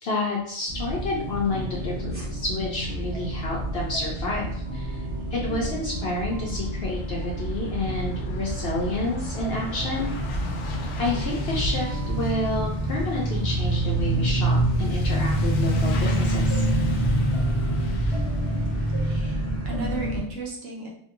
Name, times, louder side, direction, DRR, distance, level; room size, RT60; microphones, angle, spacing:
voice 1, 0.0-5.0 5.3-10.1 11.0-16.6, left 2 dB, 60° left, -3 dB, 0.8 m, -29 dB
sound 1, 0.7-20.2, right 1 dB, 15° right, 0.8 m, -27 dB
sound 2, 1.0-20.3, left 1 dB, 60° right, 1.0 m, -41 dB
Truck / Accelerating revving vroom, 5.5-5.6 5.8-19.2, left 2 dB, 85° left, 1.0 m, -36 dB
voice 2, 19.0-20.9, right 2 dB, 90° right, -3 dB, 1.3 m, -35 dB
2.9 x 2.6 x 2.5 m, 0.68 s
omnidirectional pair, 1.3 m